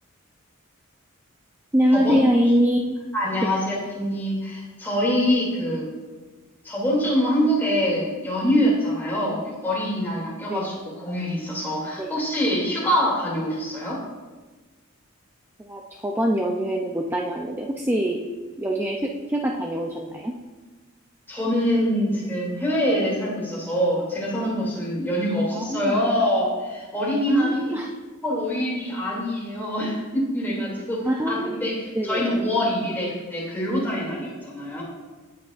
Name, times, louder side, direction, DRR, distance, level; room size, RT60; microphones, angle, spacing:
voice 1, 1.7-2.9 3.4-3.5 10.5-10.8 12.0-12.1 15.6-18.2 18.6-20.3 25.5-26.0 27.3-27.9 31.0-31.6 32.0-32.2, equal, 10° right, 0 dB, 0.5 m, -24 dB
voice 2, 3.1-5.9 6.6-14.0 21.3-27.6 28.2-34.8, equal, 10° left, -6 dB, 2.7 m, -25 dB
17.0 x 6.0 x 2.5 m, 1.3 s
head